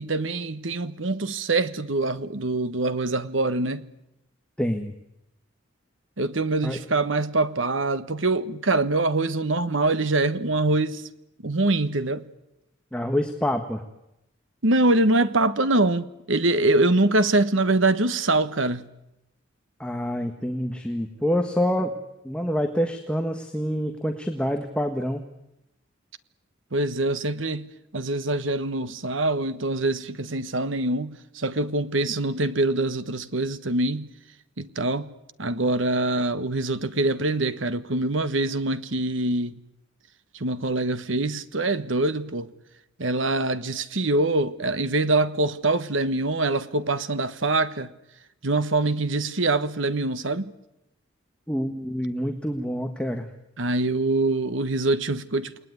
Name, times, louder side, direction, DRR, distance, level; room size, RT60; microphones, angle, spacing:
voice 1, 0.0-3.9 6.2-11.1 11.4-12.2 14.6-18.9 26.7-34.1 34.6-35.1 35.4-39.6 40.3-42.5 43.0-47.9 48.4-50.5 53.6-55.7, right 2 dB, 75° right, 1.4 m, -24 dB
voice 2, 4.6-4.9 6.6-6.8 12.9-13.8 19.8-21.9 22.2-25.2 51.5-53.3, equal, 5° left, 1.6 m, -27 dB
29.0 x 20.0 x 9.7 m
head